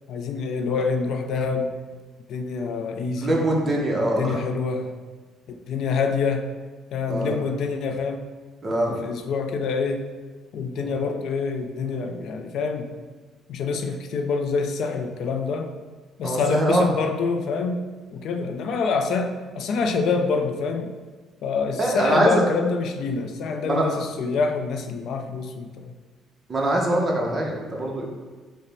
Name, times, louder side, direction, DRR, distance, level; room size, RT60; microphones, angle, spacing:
voice 1, 0.1-1.7 2.3-3.4 4.2-4.9 5.5-6.5 6.9-8.2 8.9-10.1 10.5-13.0 13.5-15.7 16.2-17.8 18.1-20.9 21.4-25.9, left 4 dB, 65° left, 5 dB, 0.3 m, -26 dB
voice 2, 3.2-4.4 7.1-7.4 8.6-9.0 10.8-11.0 16.2-16.9 21.8-22.4 23.6-23.8 26.5-28.1, right 1 dB, 25° right, -1 dB, 0.7 m, -23 dB
4.9 x 2.1 x 3.3 m, 1.3 s
cardioid pair, 130°, 0 cm